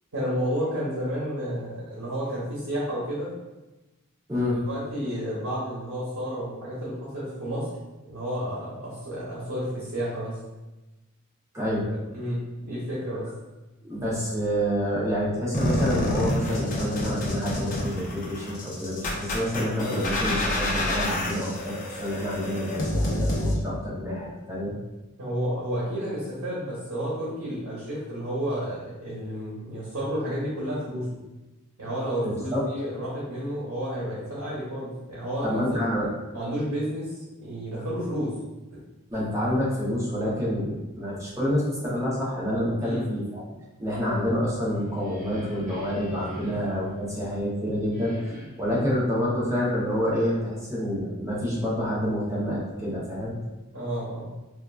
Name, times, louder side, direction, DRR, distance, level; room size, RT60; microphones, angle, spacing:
voice 1, 0.1-3.3 4.3-7.7 8.0-10.4 12.1-13.3 25.2-31.2 31.8-35.8 36.3-37.1 37.4-38.3 38.7-38.8 42.8-43.0 46.4-46.5 53.7-54.3, equal, 80° right, -7 dB, 0.9 m, -31 dB
voice 2, 4.3-4.6 11.5-11.9 13.8-24.7 32.2-32.6 35.4-36.1 39.1-43.4 43.8-53.4, equal, 15° right, -6 dB, 0.6 m, -28 dB
sound 1, 15.5-23.5, left 1 dB, 40° left, 0.5 m, -28 dB
sound 2, 44.5-47.4 47.9-48.9, left 1 dB, 45° right, 1.3 m, -43 dB
3.4 x 2.4 x 2.3 m, 1.1 s
head